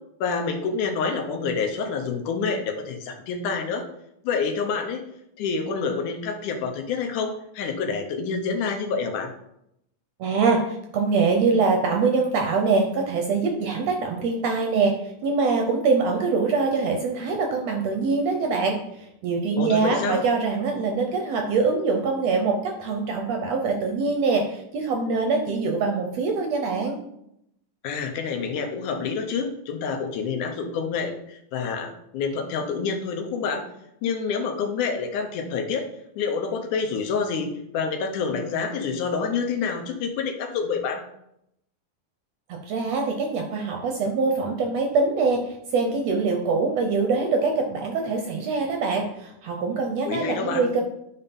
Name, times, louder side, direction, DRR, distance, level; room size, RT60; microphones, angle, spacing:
voice 1, 0.2-3.8 4.2-5.0 5.4-9.3 19.6-20.2 27.8-33.6 34.0-35.9 36.2-37.5 37.7-41.0 50.1-50.7, left 5 dB, 75° left, 4 dB, 2.4 m, -27 dB
voice 2, 10.2-27.0 42.5-50.8, right 4 dB, 70° right, 3 dB, 1.7 m, -24 dB
9.9 x 4.2 x 5.3 m, 0.79 s
omnidirectional pair, 3.7 m